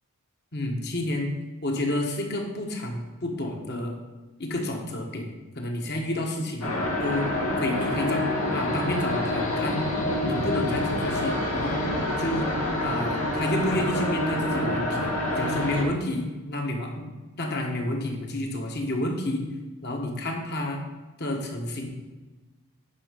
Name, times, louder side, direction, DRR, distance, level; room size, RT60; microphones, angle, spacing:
voice 1, 0.5-1.3 1.6-3.9 4.4-7.3 7.6-9.8 10.2-11.8 12.2-12.5 12.8-17.1 17.4-19.5 19.8-20.9 21.2-21.9, left 1 dB, 50° left, 1 dB, 1.6 m, -30 dB
sound 1, 6.6-15.8, left 1 dB, 85° left, 2.0 m, -27 dB
9.8 x 5.8 x 5.3 m, 1.2 s
head